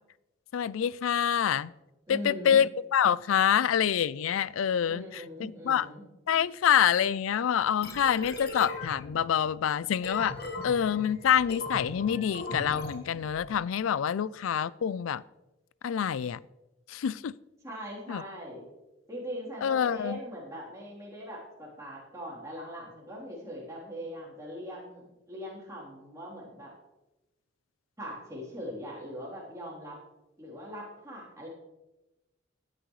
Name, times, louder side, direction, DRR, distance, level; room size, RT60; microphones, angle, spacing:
voice 1, 0.5-1.7 2.1-5.9 6.3-10.4 10.6-15.2 15.8-16.4 16.9-17.3 18.1-18.2 19.6-20.2, left 8 dB, 90° left, 0.4 m, -26 dB
voice 2, 2.1-2.6 4.8-6.0 17.6-18.6 19.1-26.7 28.0-30.0 30.4-31.5, equal, 15° right, 3.4 m, -41 dB
sound 1, 7.8-13.5, left 2 dB, 50° left, 1.5 m, -39 dB
17.5 x 9.9 x 3.2 m
head